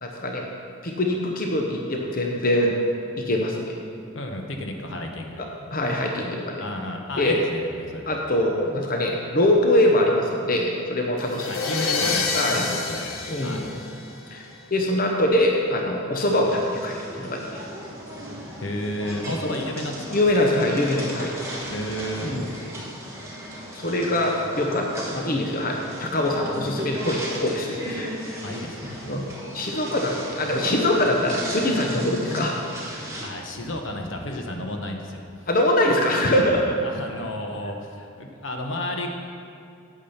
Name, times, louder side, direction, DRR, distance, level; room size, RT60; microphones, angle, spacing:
voice 1, 0.0-0.5 0.8-2.8 3.2-3.8 5.4-6.6 7.2-7.4 8.1-11.5 12.3-12.7 13.3-13.7 14.3-14.4 14.7-17.6 19.3-19.5 20.1-21.3 22.2-22.4 23.7-28.4 29.1-29.3 29.5-32.5 32.9-33.2 35.5-36.8, left 1 dB, 45° left, 1 dB, 0.9 m, -23 dB
voice 2, 4.1-5.4 6.6-8.3 11.5-12.3 12.7-13.1 13.4-13.7 18.6-20.2 21.7-22.3 26.6-26.8 28.4-29.2 33.2-35.2 36.8-39.1, left 1 dB, 65° left, 3 dB, 1.0 m, -32 dB
sound 1, 11.2-14.4, left 4 dB, 85° left, 1.2 m, -28 dB
sound 2, 16.3-33.3, equal, 15° right, 1.5 m, -36 dB
8.7 x 8.6 x 5.7 m, 2.5 s
head